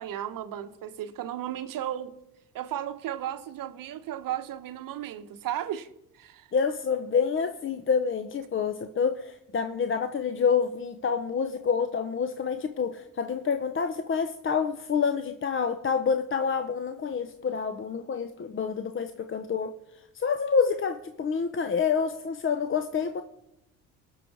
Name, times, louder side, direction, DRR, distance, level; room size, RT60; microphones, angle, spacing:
voice 1, 0.0-2.1 2.5-5.9 6.1-6.5, right 11 dB, 50° right, 0.9 m, -34 dB
voice 2, 6.5-19.8 20.1-23.2, left 6 dB, 30° left, 0.7 m, -27 dB
18.5 x 6.4 x 4.6 m
hypercardioid pair, 60°, 42 cm